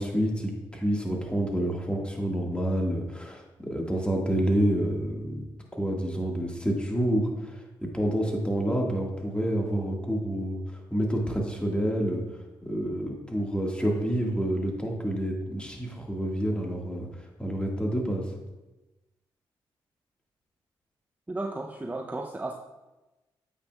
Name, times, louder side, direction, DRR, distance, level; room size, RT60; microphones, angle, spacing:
voice 1, 0.0-5.4 5.7-7.6 7.9-12.2 12.6-18.2, right 1 dB, 10° left, 0 dB, 1.6 m, -28 dB
voice 2, 21.3-22.5, right 2 dB, 15° right, 4 dB, 0.5 m, -34 dB
8.4 x 5.4 x 2.3 m, 1.1 s
supercardioid pair, 45°, 10 cm